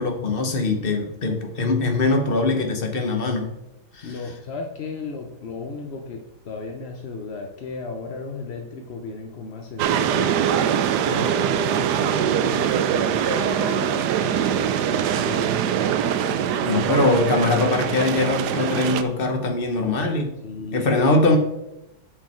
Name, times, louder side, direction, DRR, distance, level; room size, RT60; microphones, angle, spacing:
voice 1, 0.0-3.5 3.9-4.1 16.3-20.3 20.7-21.4, left 2 dB, 35° left, 4 dB, 1.1 m, -22 dB
voice 2, 4.0-10.7 11.0-15.5 16.4-17.1 20.4-21.4, left 4 dB, 60° left, 3 dB, 0.7 m, -35 dB
sound 1, 9.8-19.0, right 9 dB, 70° right, 1.0 m, -23 dB
Wind instrument woodwind instrument, 13.2-17.5, right 2 dB, 10° right, 0.8 m, -42 dB
7.8 x 6.4 x 4.4 m, 0.85 s
omnidirectional pair, 2.1 m